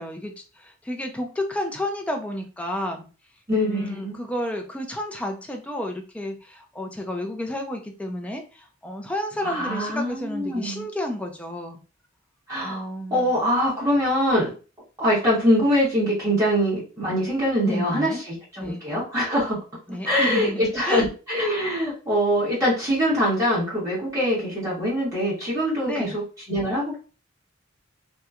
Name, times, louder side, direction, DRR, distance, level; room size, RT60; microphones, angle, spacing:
voice 1, 0.0-3.1 3.6-11.8 12.6-13.3 17.6-18.2 18.6-18.9 19.9-21.1 25.9-26.2, left 1 dB, 5° left, 3 dB, 0.4 m, -31 dB
voice 2, 3.5-4.1 9.4-10.9 12.5-14.5 15.0-19.6 20.0-26.9, equal, 15° right, -8 dB, 1.1 m, -23 dB
2.8 x 2.2 x 2.3 m, 0.34 s
head